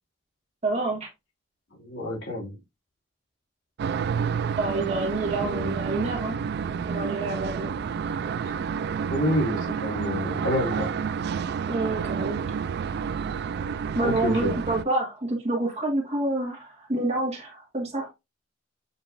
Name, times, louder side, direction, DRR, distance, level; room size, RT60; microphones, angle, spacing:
voice 1, 0.6-1.1 4.6-6.4 6.9-7.7 11.7-12.4 13.9-18.1, right 2 dB, 35° right, 1.6 m, -28 dB
voice 2, 1.8-2.6 5.4-5.6 9.1-10.9 14.0-14.5, left 1 dB, 75° left, 2.7 m, -28 dB
sound 1, 3.8-14.8, right 6 dB, 60° right, 0.3 m, -29 dB
7.2 x 2.9 x 2.5 m
head